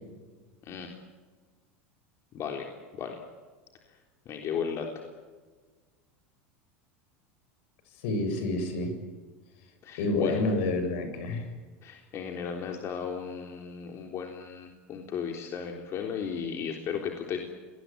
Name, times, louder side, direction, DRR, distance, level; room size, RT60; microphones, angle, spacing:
voice 1, 0.6-1.0 2.3-2.7 3.0-3.2 4.3-5.0 9.8-10.5 11.8-17.4, left 7 dB, 45° left, 3 dB, 3.7 m, -35 dB
voice 2, 8.0-8.9 10.0-11.4, left 2 dB, 70° left, 7 dB, 7.6 m, -28 dB
26.5 x 20.5 x 9.0 m, 1.4 s
hypercardioid pair, 95°, 7 cm